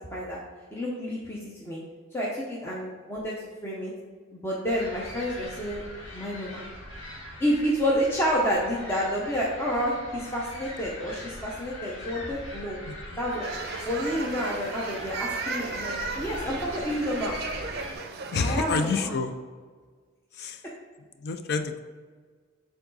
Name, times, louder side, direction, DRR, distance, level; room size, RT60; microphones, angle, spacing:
voice 1, 0.7-1.8 2.1-3.3 3.6-3.9 4.3-5.8 6.1-6.6 7.4-12.8 13.2-13.4 13.8-17.3 18.4-19.1, equal, 10° left, -5 dB, 0.7 m, -29 dB
sound 1, 4.6-17.9, left 1 dB, 70° left, 1.6 m, -41 dB
sound 2, 13.4-19.0, right 4 dB, 50° right, 0.5 m, -36 dB
voice 2, 18.3-19.3 20.3-20.6 21.2-21.8, left 4 dB, 50° left, 8 dB, 0.4 m, -28 dB
7.1 x 3.8 x 3.9 m, 1.5 s
head